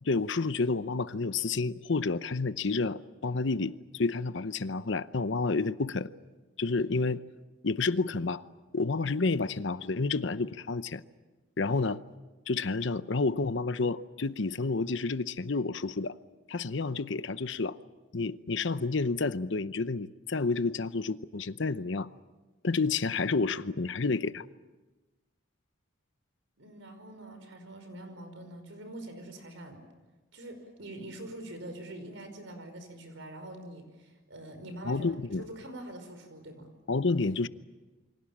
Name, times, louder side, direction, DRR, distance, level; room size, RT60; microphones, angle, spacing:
voice 1, 0.0-6.1 6.6-7.2 7.6-8.4 8.7-11.0 11.6-12.0 12.5-16.1 16.5-17.8 18.1-22.1 22.6-24.4 34.8-35.4 36.9-37.5, left 3 dB, 65° left, 0.8 m, -30 dB
voice 2, 26.6-29.8 30.3-35.1 35.4-36.7, right 1 dB, 70° right, 5.4 m, -44 dB
28.5 x 24.5 x 7.3 m
head